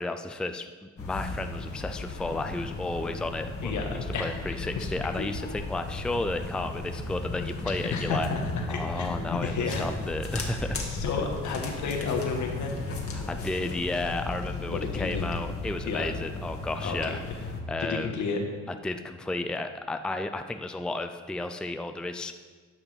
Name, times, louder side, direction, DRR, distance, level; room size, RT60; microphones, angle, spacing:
voice 1, 0.0-8.3 8.7-10.8 13.1-17.2 17.7-18.2 18.8-22.3, left 2 dB, 5° left, 8 dB, 0.5 m, -33 dB
sound 1, 1.0-17.6, left 3 dB, 50° left, 1.8 m, -35 dB
voice 2, 3.6-4.3 4.8-4.9 5.2-5.3 7.9-9.8 10.9-12.8 14.6-15.3 15.8-16.1 16.8-17.2 17.8-18.4, left 4 dB, 70° left, 2 dB, 1.7 m, -31 dB
10.5 x 5.7 x 5.7 m, 1.5 s
cardioid pair, 90°, 30 cm